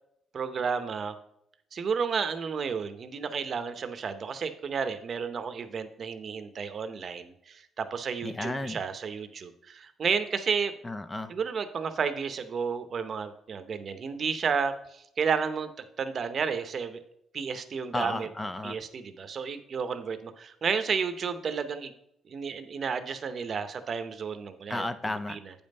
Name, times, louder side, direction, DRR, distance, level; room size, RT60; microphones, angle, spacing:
voice 1, 0.3-1.2 1.7-10.7 11.3-17.0 17.3-18.3 18.6-21.9 22.3-24.8 25.3-25.5, right 6 dB, 45° right, 10 dB, 0.8 m, -32 dB
voice 2, 8.2-8.8 10.8-11.3 17.9-18.8 24.7-25.4, left 2 dB, 15° left, 11 dB, 0.4 m, -33 dB
8.6 x 5.4 x 5.3 m, 0.76 s
cardioid pair, 130°, 0 cm